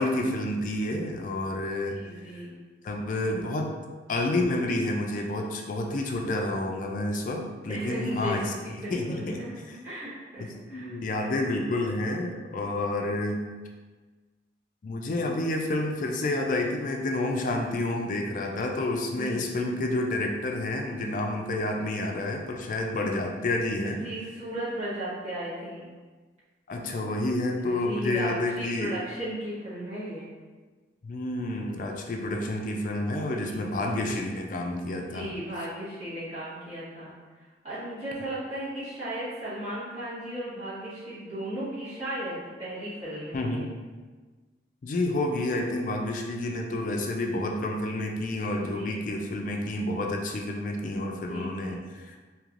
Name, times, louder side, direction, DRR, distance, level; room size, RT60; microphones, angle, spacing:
voice 1, 0.0-2.0 2.3-2.4 2.8-3.7 4.1-8.5 8.9-9.4 10.4-13.4 14.8-24.0 26.7-28.9 31.0-35.3 43.3-43.7 44.8-52.2, left 1 dB, 45° left, 2 dB, 0.3 m, -29 dB
voice 2, 1.9-2.5 7.7-8.4 8.7-10.4 10.7-10.9 19.1-19.4 23.8-25.9 27.6-30.3 33.4-34.0 35.1-37.1 37.6-43.6 48.6-49.1 51.3-51.8, right 1 dB, 35° right, -12 dB, 1.1 m, -36 dB
3.1 x 2.8 x 2.4 m, 1.3 s
head